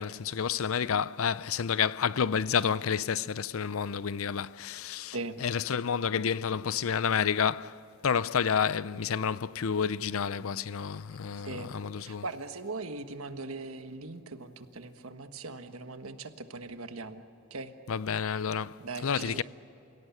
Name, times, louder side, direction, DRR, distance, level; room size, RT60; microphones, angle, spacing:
voice 1, 0.0-12.2 17.9-19.4, left 7 dB, 75° left, 0.5 m, -30 dB
voice 2, 12.0-17.2 17.5-17.7 18.8-19.4, right 3 dB, 80° right, 1.4 m, -40 dB
28.5 x 17.5 x 8.5 m
head